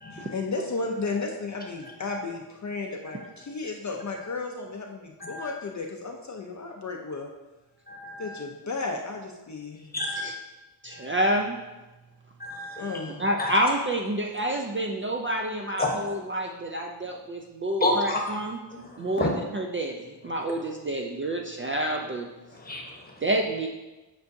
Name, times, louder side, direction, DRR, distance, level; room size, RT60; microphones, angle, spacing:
voice 1, 0.1-7.3 8.2-9.9 12.8-13.2, left 3 dB, 45° left, 2 dB, 0.5 m, -34 dB
voice 2, 7.9-8.4 9.9-10.2 10.9-11.0 12.4-13.0 13.4-13.5 15.8-15.9 17.8-18.2 18.7-19.3 22.5-23.1, left 2 dB, 20° left, 0 dB, 1.0 m, -30 dB
voice 3, 10.8-11.6 13.2-18.6 19.0-22.3 23.2-23.7, right 1 dB, 30° right, 1 dB, 0.4 m, -28 dB
8.0 x 5.6 x 2.6 m, 1.1 s
wide cardioid pair, 180°, 43 cm